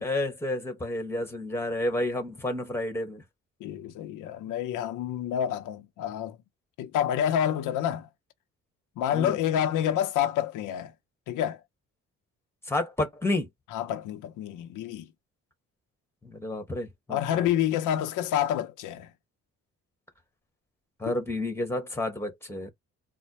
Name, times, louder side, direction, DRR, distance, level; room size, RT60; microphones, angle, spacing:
voice 1, 0.0-3.2 9.1-9.4 12.7-13.5 16.2-17.4 21.0-22.7, left 1 dB, 10° left, 1.4 m, -30 dB
voice 2, 3.6-6.4 6.8-8.1 9.0-10.9 11.3-11.6 13.7-15.1 17.1-19.1, left 10 dB, 90° left, 0.7 m, -28 dB
4.2 x 2.2 x 3.0 m
cardioid pair, 90°, 30 cm